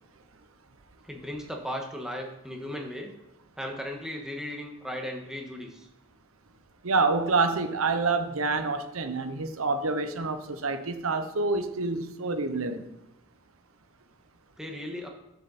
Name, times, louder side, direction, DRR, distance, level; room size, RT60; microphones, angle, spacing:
voice 1, 1.0-3.1 3.6-5.9 14.6-15.1, equal, 5° right, 1.5 m, -36 dB
voice 2, 6.8-12.8, right 3 dB, 80° right, 0.9 m, -27 dB
12.5 x 6.9 x 4.2 m
head